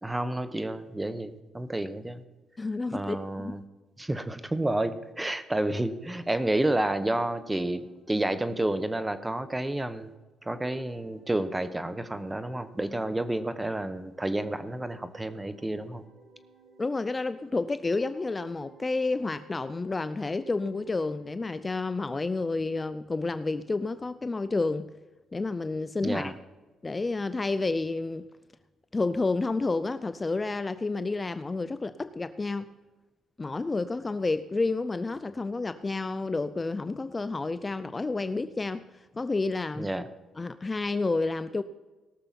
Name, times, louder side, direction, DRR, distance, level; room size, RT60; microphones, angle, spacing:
voice 1, 0.0-2.2 2.9-3.6 4.0-10.1 10.5-16.0 26.0-26.4 39.7-40.1, right 1 dB, 15° right, 12 dB, 1.1 m, -30 dB
voice 2, 2.6-3.6 16.8-24.9 25.3-26.3 26.8-28.2 28.9-32.7 33.4-39.9 40.4-41.6, left 3 dB, 25° left, 13 dB, 0.5 m, -30 dB
sound 1, 6.6-13.8 14.2-17.5 17.8-21.5, right 3 dB, 70° right, 4.4 m, -56 dB
18.0 x 6.7 x 5.9 m, 1.2 s
cardioid pair, 90°, 0 cm